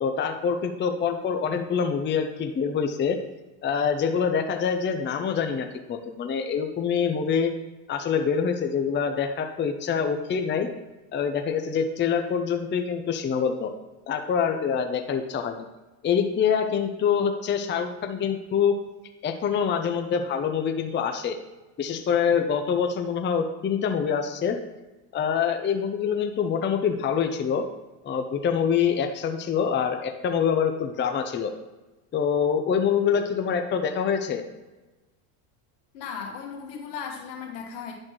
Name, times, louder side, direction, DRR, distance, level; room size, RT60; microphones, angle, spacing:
voice 1, 0.0-3.2 3.6-7.5 7.9-10.7 11.1-13.7 14.1-15.6 16.0-18.7 19.2-21.4 21.8-24.6 25.1-27.6 28.0-31.5 32.1-34.4, left 7 dB, 25° left, 5 dB, 0.6 m, -25 dB
voice 2, 35.9-37.9, left 6 dB, 80° left, 1 dB, 1.8 m, -36 dB
10.5 x 4.2 x 3.1 m, 1.1 s
supercardioid pair, 95°, 48 cm